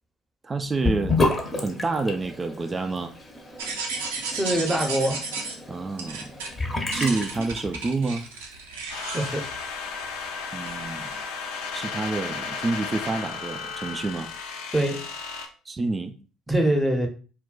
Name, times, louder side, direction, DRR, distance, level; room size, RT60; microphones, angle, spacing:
voice 1, 0.4-1.2 1.6-3.1 5.7-6.3 6.9-8.2 10.5-11.2 11.7-14.3 15.7-16.1, right 3 dB, 30° right, 8 dB, 0.4 m, -28 dB
Sink (filling or washing) / Bathtub (filling or washing), 0.8-8.1, left 2 dB, 25° left, 0.7 m, -30 dB
sound 1, 3.6-5.6 6.0-6.5 6.9-10.3 10.7-11.3, right 4 dB, 80° right, 0.5 m, -34 dB
voice 2, 4.3-5.3 9.1-9.5 14.7-15.1 16.5-17.1, right 1 dB, 10° right, 4 dB, 0.7 m, -24 dB
sound 2, 8.9-15.5, left 5 dB, 70° left, 0.5 m, -34 dB
2.2 x 2.2 x 3.7 m, 0.37 s
hypercardioid pair, 60°, 0 cm